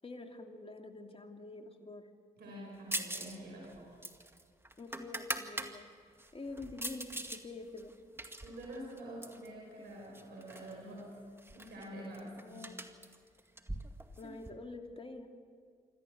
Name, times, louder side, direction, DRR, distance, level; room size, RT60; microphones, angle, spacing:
voice 1, 0.0-2.1 4.8-5.9 6.3-7.9 12.2-12.8 14.2-15.3, left 3 dB, 35° left, 4 dB, 2.9 m, -47 dB
voice 2, 2.4-4.0 8.4-11.2 11.5-12.7, right 1 dB, 85° right, -2 dB, 5.1 m, -47 dB
sound 1, 2.9-3.4 3.6-5.7 6.2-7.4 7.8-9.5 10.1-10.7 11.0-11.1 11.4-14.5, right 1 dB, 15° right, 2.1 m, -42 dB
27.0 x 13.5 x 8.2 m, 2.2 s
supercardioid pair, 40°, 17 cm